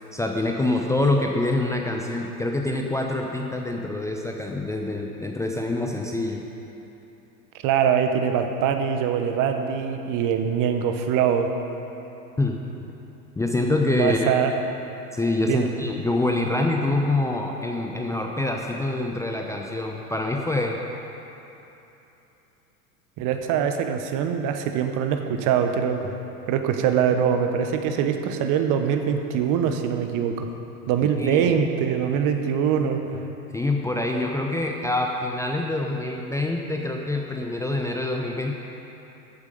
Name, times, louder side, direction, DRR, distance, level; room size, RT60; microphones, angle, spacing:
voice 1, 0.1-6.4 12.4-12.6 13.4-14.3 15.1-20.8 31.2-31.5 33.5-38.5, left 2 dB, 5° left, 1 dB, 0.7 m, -25 dB
voice 2, 7.6-11.5 13.9-14.5 15.5-15.7 23.2-26.2 26.5-30.5 30.9-33.0, right 8 dB, 40° right, 6 dB, 1.1 m, -23 dB
14.0 x 8.2 x 5.3 m, 3.0 s
hypercardioid pair, 90°, 47 cm